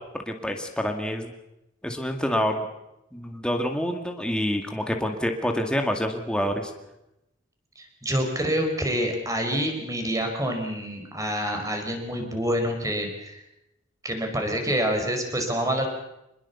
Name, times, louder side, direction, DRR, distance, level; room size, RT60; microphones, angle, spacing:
voice 1, 0.3-1.3 1.8-2.7 3.1-6.7, equal, 5° left, 3 dB, 2.3 m, -27 dB
voice 2, 7.8-13.4 14.0-15.9, equal, 15° right, 4 dB, 5.0 m, -27 dB
26.0 x 21.0 x 7.1 m, 0.86 s
head